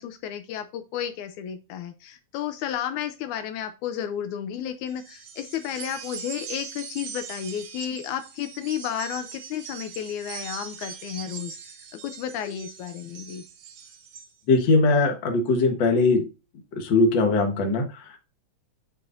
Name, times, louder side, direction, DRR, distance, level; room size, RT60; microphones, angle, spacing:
voice 1, 0.0-13.4, left 10 dB, 80° left, 9 dB, 2.0 m, -32 dB
sound 1, 4.9-14.3, right 7 dB, 65° right, 1.4 m, -41 dB
voice 2, 14.5-16.2 16.8-18.2, left 3 dB, 50° left, 4 dB, 1.6 m, -21 dB
9.6 x 4.9 x 2.6 m, 0.30 s
omnidirectional pair, 3.5 m